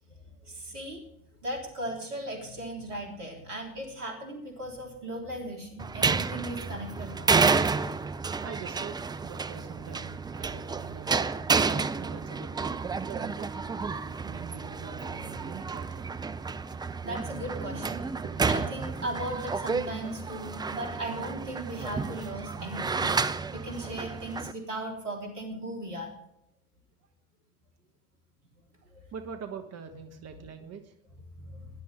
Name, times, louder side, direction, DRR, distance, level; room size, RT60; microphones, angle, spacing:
voice 1, 0.4-1.0 1.4-7.3 7.7-7.9 17.0-18.1 18.5-23.1 23.5-26.2 28.9-29.0 31.4-31.7, right 1 dB, 80° right, 1 dB, 3.7 m, -37 dB
sound 1, 5.8-24.5, right 4 dB, 10° right, 0.4 m, -30 dB
voice 2, 8.4-11.3 12.0-13.5 14.0-16.0 18.1-18.4 22.6-22.8 23.0-23.3 28.8-31.0, right 6 dB, 35° right, 6 dB, 1.4 m, -44 dB
19.0 x 11.0 x 3.5 m, 0.76 s
figure-of-eight pair, 70°, 46 cm